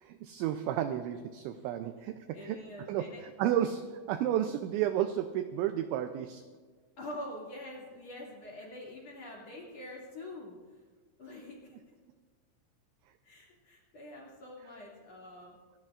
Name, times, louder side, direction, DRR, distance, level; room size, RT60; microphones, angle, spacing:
voice 1, 0.0-2.6 2.9-6.4, right 11 dB, 85° right, 9 dB, 2.6 m, -32 dB
voice 2, 2.3-3.2 7.0-10.6 11.2-11.7 13.2-15.6, left 1 dB, 40° left, -3 dB, 2.7 m, -45 dB
27.5 x 15.0 x 2.5 m, 1.5 s
omnidirectional pair, 6.0 m